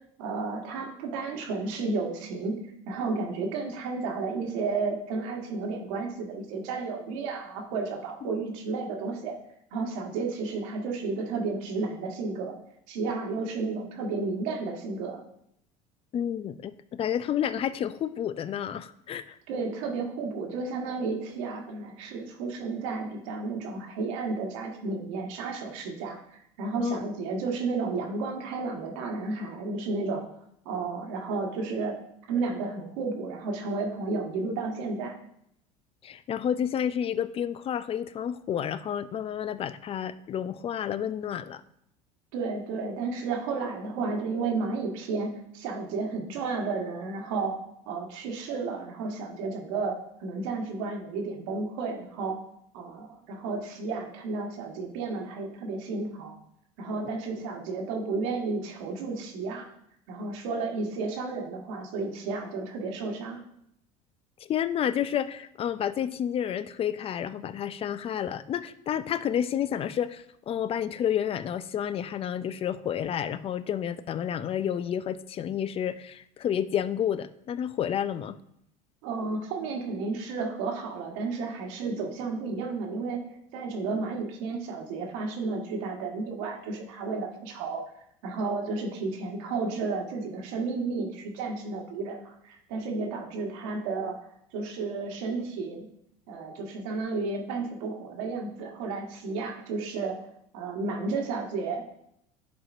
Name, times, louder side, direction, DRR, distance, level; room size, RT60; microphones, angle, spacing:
voice 1, 0.2-2.6 2.9-9.4 9.7-12.6 12.9-15.2 19.5-30.2 30.6-32.0 32.3-35.2 42.3-47.6 47.9-52.4 52.7-56.4 56.8-59.7 60.1-63.4 79.0-83.2 83.5-87.8 88.2-94.2 94.5-95.9 96.3-100.2 100.5-101.8, right 4 dB, 75° right, 2 dB, 1.3 m, -32 dB
voice 2, 16.1-19.4 26.8-27.0 36.0-41.6 57.0-57.2 64.4-78.4, left 9 dB, 35° left, 14 dB, 0.4 m, -30 dB
11.0 x 4.3 x 2.5 m, 0.75 s
supercardioid pair, 90°, 17 cm